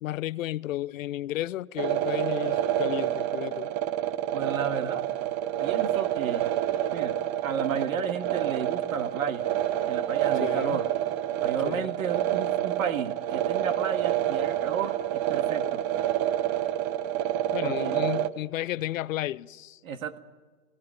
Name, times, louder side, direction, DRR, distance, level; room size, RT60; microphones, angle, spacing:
voice 1, 0.0-3.7 10.3-10.8 11.6-12.0 17.5-19.8, left 14 dB, 70° left, 0.8 m, -33 dB
sound 1, 1.8-18.3, right 12 dB, 35° right, 1.0 m, -28 dB
voice 2, 4.3-5.0 5.6-6.5 6.9-9.5 9.9-10.9 11.4-15.8 17.6-18.0 19.8-20.2, right 7 dB, 75° right, 1.8 m, -33 dB
19.5 x 17.0 x 9.5 m
hypercardioid pair, 125°, 41 cm